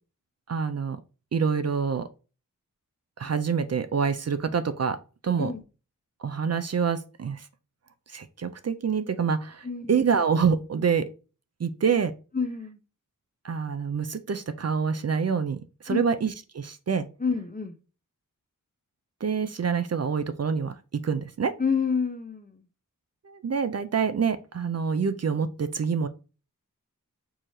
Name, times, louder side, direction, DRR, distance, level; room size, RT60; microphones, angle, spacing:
voice 1, 0.5-1.0 1.3-2.1 3.2-5.0 5.2-5.5 6.2-7.5 8.1-11.1 11.6-12.1 13.4-17.1 19.2-21.5 23.3-26.1, right 6 dB, 50° right, 0.4 m, -26 dB
voice 2, 9.6-10.0 12.3-12.8 15.9-16.0 17.2-17.7 21.6-22.6, left 5 dB, 25° left, 0.6 m, -28 dB
4.7 x 3.1 x 2.7 m
wide cardioid pair, 70°, 33 cm